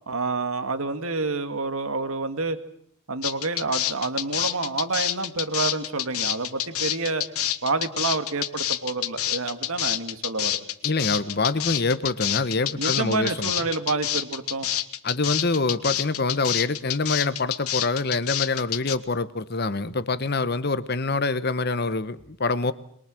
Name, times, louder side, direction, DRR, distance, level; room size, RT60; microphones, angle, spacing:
voice 1, 0.1-2.6 3.1-7.2 7.6-10.7 12.7-14.7, right 3 dB, 75° right, 9 dB, 1.9 m, -28 dB
sound 1, 3.2-19.0, left 12 dB, 85° left, 1.2 m, -27 dB
voice 2, 10.8-13.5 15.0-22.7, left 3 dB, 45° left, 14 dB, 1.0 m, -25 dB
23.0 x 22.5 x 7.7 m, 0.67 s
head